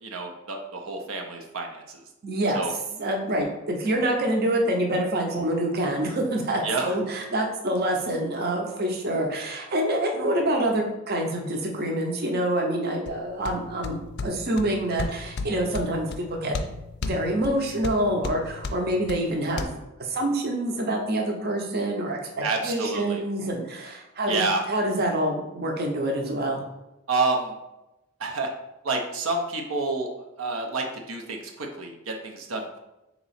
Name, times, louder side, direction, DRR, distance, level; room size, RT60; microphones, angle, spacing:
voice 1, 0.0-2.0 2.5-2.7 6.6-6.9 22.4-23.2 24.3-24.6 27.1-27.6 28.2-28.5 28.8-32.8, right 3 dB, 90° right, 2 dB, 0.6 m, -29 dB
voice 2, 2.2-2.6 3.0-16.6 17.0-19.8 20.1-24.4 24.7-26.6, right 1 dB, 50° right, 2 dB, 0.7 m, -26 dB
sound 1, 13.1-19.7, left 3 dB, 55° left, 0.4 m, -35 dB
3.9 x 2.9 x 4.2 m, 0.94 s
head